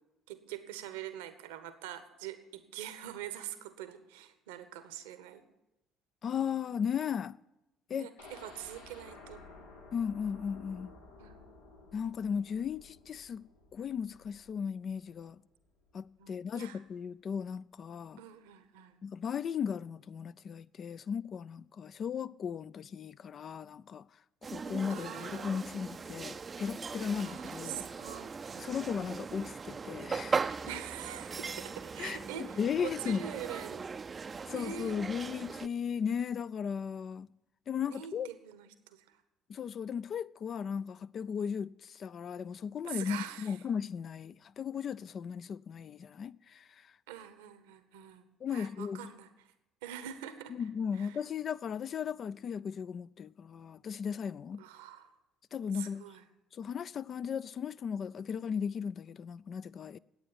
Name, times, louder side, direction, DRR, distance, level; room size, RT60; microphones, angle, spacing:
voice 1, 0.3-5.4 7.9-9.4 11.2-11.4 16.2-16.8 18.2-19.0 24.9-25.7 27.2-28.7 30.7-33.9 34.5-35.0 37.9-39.2 42.9-43.6 47.1-48.2 48.5-49.3 49.8-50.6 50.9-51.2 54.6-55.1 55.7-56.2, right 11 dB, 80° right, 1.0 m, -44 dB
voice 2, 6.2-7.4 7.9-8.1 9.9-10.9 11.9-13.4 13.7-15.4 15.9-18.2 19.0-24.0 24.4-27.9 28.6-30.6 32.0-32.2 32.6-33.2 34.5-37.3 37.7-38.3 39.5-46.9 48.4-49.1 50.5-54.6 55.5-56.0 56.5-60.0, left 7 dB, 50° left, 0.4 m, -36 dB
sound 1, 8.2-16.1 16.4-16.5 16.9-17.0, left 3 dB, 90° left, 1.6 m, -54 dB
sound 2, 24.4-35.7, right 5 dB, 35° right, 0.5 m, -39 dB
10.5 x 8.7 x 9.9 m
hypercardioid pair, 55°, 0 cm